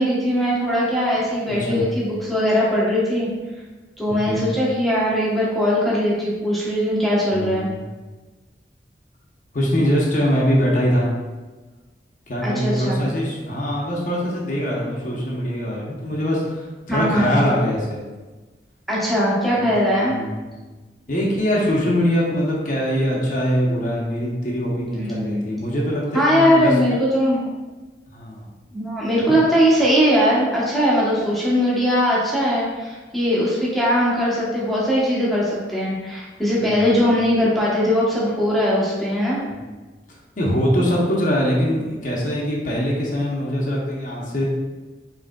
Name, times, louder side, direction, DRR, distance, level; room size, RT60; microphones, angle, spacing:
voice 1, 0.0-3.3 4.0-7.7 12.4-13.0 16.9-17.4 18.9-20.1 24.9-25.5 26.1-27.4 28.7-39.4, equal, ahead, -7 dB, 0.9 m, -20 dB
voice 2, 1.5-1.9 4.1-4.5 7.3-7.8 9.5-11.1 12.3-18.0 19.5-19.7 20.0-20.4 21.1-26.7 28.1-28.5 29.2-29.4 36.6-37.0 39.5-39.7 40.4-44.5, equal, 45° left, -3 dB, 0.7 m, -23 dB
5.0 x 3.2 x 2.2 m, 1.2 s
head